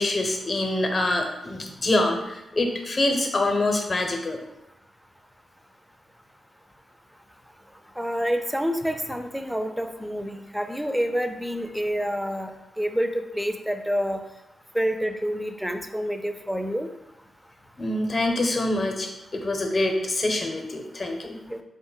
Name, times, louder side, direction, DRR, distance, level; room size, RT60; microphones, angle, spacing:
voice 1, 0.0-4.4 17.8-21.3, left 2 dB, 40° left, 4 dB, 0.6 m, -25 dB
voice 2, 8.0-12.5 12.8-14.2 14.7-16.9 21.2-21.6, equal, ahead, 7 dB, 0.4 m, -28 dB
3.8 x 2.1 x 3.8 m, 0.94 s
supercardioid pair, 55°, 0 cm